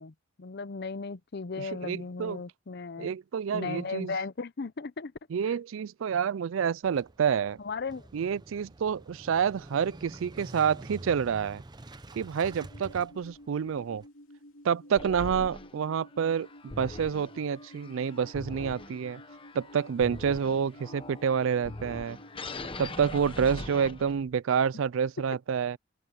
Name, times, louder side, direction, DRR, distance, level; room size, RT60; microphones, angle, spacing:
voice 1, 0.0-3.1 3.5-5.1 7.6-8.1, left 4 dB, 50° left, 0.6 m, -36 dB
voice 2, 1.6-2.4 3.0-4.2 5.3-7.6 8.1-11.6 12.1-14.0 14.6-19.2 19.5-22.2 22.8-25.8, right 7 dB, 70° right, 0.4 m, -28 dB
Motorcycle / Engine starting, 6.8-14.1, right 2 dB, 20° right, 0.7 m, -47 dB
sound 1, 12.5-22.6, equal, 70° left, 2.9 m, -52 dB
sound 2, 15.0-24.4, left 2 dB, 25° left, 1.0 m, -42 dB
open air
head